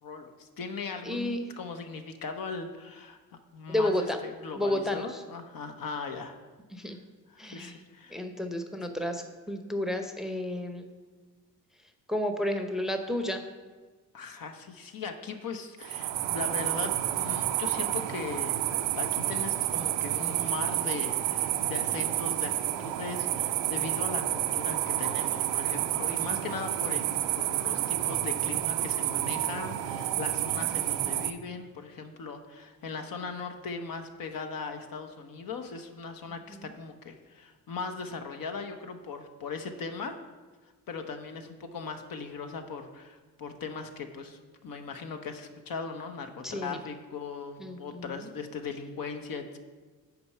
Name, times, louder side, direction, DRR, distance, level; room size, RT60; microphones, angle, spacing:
voice 1, 0.0-3.2 3.5-3.9 4.2-6.4 7.3-8.2 14.1-18.6 18.9-27.1 27.3-40.1 40.6-49.6, left 5 dB, 50° left, 6 dB, 0.8 m, -39 dB
voice 2, 1.0-1.4 3.7-4.2 4.5-5.2 6.7-7.0 7.4-7.8 8.1-10.9 11.8-13.4 36.3-36.7 46.4-46.8 47.6-48.3, left 1 dB, ahead, 6 dB, 0.8 m, -32 dB
sound 1, 15.8-31.3, right 13 dB, 70° right, 0.6 m, -30 dB
6.7 x 4.7 x 5.5 m, 1.4 s
hypercardioid pair, 45°, 45 cm